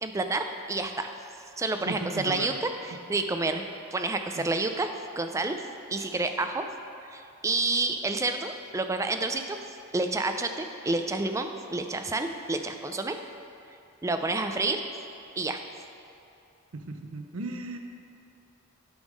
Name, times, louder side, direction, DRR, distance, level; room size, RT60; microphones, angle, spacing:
voice 1, 0.0-1.1 1.6-3.6 3.9-4.9 5.2-5.6 5.9-6.7 7.1-9.6 9.9-13.2 14.0-14.8 15.4-15.6, right 3 dB, 15° right, 6 dB, 0.3 m, -29 dB
voice 2, 1.9-2.5 2.9-3.0 4.4-4.5 16.7-17.8, right 2 dB, 70° right, 5 dB, 0.6 m, -36 dB
9.3 x 3.6 x 6.3 m, 2.6 s
head